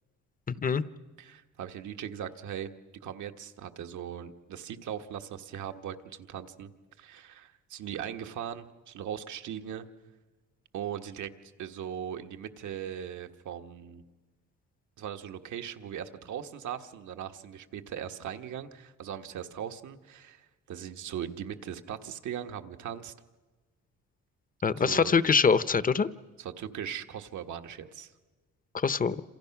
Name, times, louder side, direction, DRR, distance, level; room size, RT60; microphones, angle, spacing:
voice 1, 0.5-0.8 24.6-26.1 28.7-29.2, left 5 dB, 30° left, 15 dB, 0.9 m, -24 dB
voice 2, 1.2-2.7 3.0-6.7 7.0-9.8 10.7-11.3 11.6-14.0 15.0-23.1 24.8-25.1 26.4-28.1, right 9 dB, 75° right, 6 dB, 1.5 m, -39 dB
27.5 x 27.5 x 6.0 m, 1.3 s
cardioid pair, 90°, 30 cm